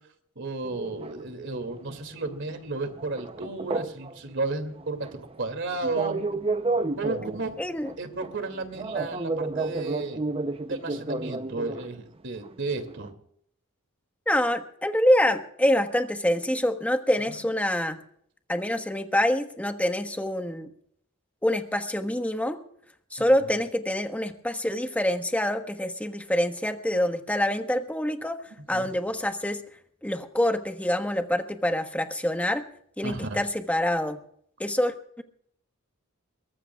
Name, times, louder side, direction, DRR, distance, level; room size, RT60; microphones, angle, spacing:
voice 1, 0.4-6.2 7.0-7.5 8.0-10.2 10.7-13.1 17.3-17.4 23.2-23.3 28.7-28.9 33.0-33.4, right 3 dB, 60° right, 7 dB, 2.6 m, -33 dB
sound 1, 0.6-2.2 2.5-4.2 4.5-11.9 12.4-12.5 12.8-13.0, right 3 dB, 25° right, 0.7 m, -31 dB
voice 2, 7.6-7.9 14.3-18.0 18.5-20.7 21.4-22.6 23.1-28.4 28.7-29.6 30.0-32.7 33.0-34.2 34.6-35.2, left 1 dB, 5° left, 6 dB, 1.3 m, -26 dB
23.5 x 19.5 x 2.4 m, 0.65 s
head